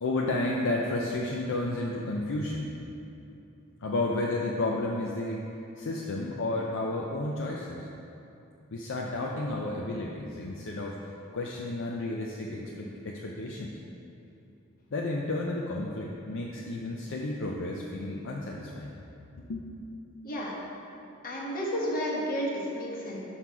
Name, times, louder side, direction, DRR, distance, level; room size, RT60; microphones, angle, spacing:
voice 1, 0.0-2.7 3.8-5.4 5.8-7.9 8.7-13.7 14.9-19.0 19.4-19.6, left 2 dB, 65° left, -2 dB, 0.5 m, -32 dB
voice 2, 20.2-20.6 21.2-23.2, equal, 45° left, -4 dB, 1.3 m, -31 dB
6.0 x 5.7 x 4.6 m, 2.8 s
head